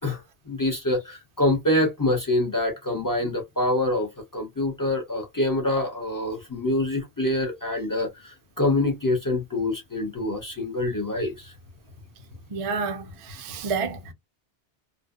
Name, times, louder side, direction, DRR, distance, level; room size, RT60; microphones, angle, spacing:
voice 1, 0.5-11.5, left 1 dB, 25° left, 0.5 m, -25 dB
voice 2, 12.5-14.1, right 5 dB, 60° right, 0.3 m, -30 dB
2.6 x 2.1 x 2.3 m
omnidirectional pair, 1.2 m